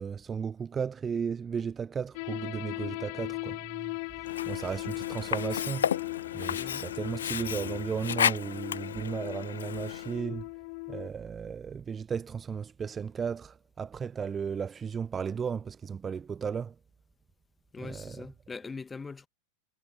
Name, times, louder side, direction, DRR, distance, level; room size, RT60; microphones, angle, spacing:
voice 1, 0.0-4.0 4.5-6.0 6.3-10.5 10.9-16.7 17.8-18.3, right 6 dB, 20° right, 0.8 m, -35 dB
sound 1, 2.1-11.1, left 34 dB, 45° left, 0.4 m, -38 dB
Sink (filling or washing), 4.2-10.2, left 9 dB, 65° left, 0.9 m, -33 dB
voice 2, 6.5-6.9 17.7-19.3, left 4 dB, 15° left, 2.0 m, -42 dB
figure-of-eight pair, 90°, 0 cm